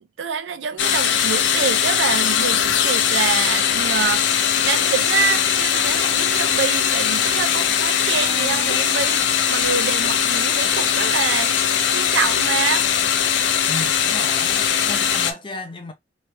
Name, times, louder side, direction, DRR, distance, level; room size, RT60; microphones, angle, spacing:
voice 1, 0.2-4.3 4.6-9.2 9.5-11.5 11.9-12.9, right 7 dB, 85° right, 0.4 m, -26 dB
sound 1, 0.8-15.3, left 8 dB, 75° left, 0.5 m, -20 dB
voice 2, 13.7-15.9, left 2 dB, 30° left, 0.6 m, -34 dB
3.2 x 2.3 x 3.1 m
head